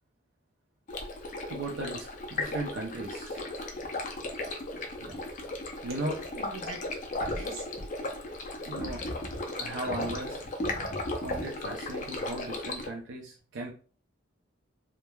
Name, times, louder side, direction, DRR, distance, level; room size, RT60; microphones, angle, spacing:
Stream, 0.9-12.9, left 2 dB, 40° left, 0.4 m, -35 dB
voice 1, 1.5-3.4 5.0-5.2 5.8-6.1 8.6-9.0 9.6-10.4 11.1-13.7, right 2 dB, 65° right, -1 dB, 0.5 m, -37 dB
voice 2, 6.3-7.7, right 3 dB, 90° right, 1 dB, 0.8 m, -46 dB
3.1 x 2.1 x 2.2 m, 0.40 s
head